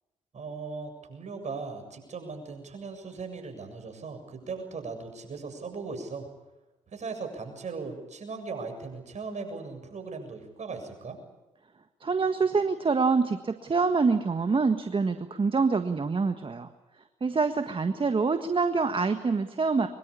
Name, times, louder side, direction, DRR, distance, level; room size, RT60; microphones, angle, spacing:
voice 1, 0.3-6.3 6.9-11.2, right 4 dB, 50° right, 5 dB, 7.4 m, -38 dB
voice 2, 12.0-16.7 17.2-19.9, right 4 dB, 35° right, 8 dB, 1.6 m, -26 dB
24.0 x 23.0 x 8.6 m, 1.1 s
hypercardioid pair, 45°, 15 cm